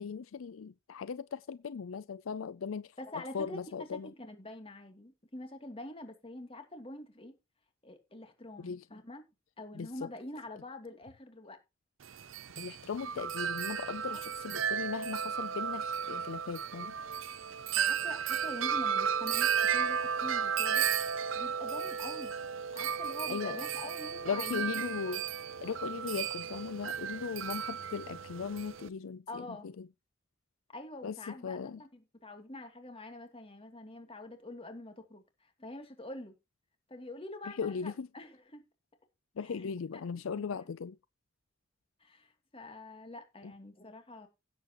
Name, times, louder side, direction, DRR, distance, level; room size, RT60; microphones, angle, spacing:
voice 1, 0.0-4.1 8.6-8.8 9.7-9.9 12.6-16.9 23.3-23.6 24.3-25.3 25.6-29.9 31.0-31.8 37.5-38.1 39.4-41.0 43.4-43.5, left 6 dB, 80° left, 0.5 m, -38 dB
voice 2, 3.0-7.3 7.8-9.2 9.6-11.6 17.7-20.9 21.3-22.3 22.7-24.8 29.3-29.7 30.7-36.3 36.9-38.6 39.4-39.7 39.9-40.0 40.3-40.6 42.0-44.3, left 1 dB, 30° left, 2.7 m, -46 dB
Wind chime, 12.0-28.9, right 8 dB, 70° right, 0.6 m, -34 dB
16.5 x 8.0 x 3.0 m
head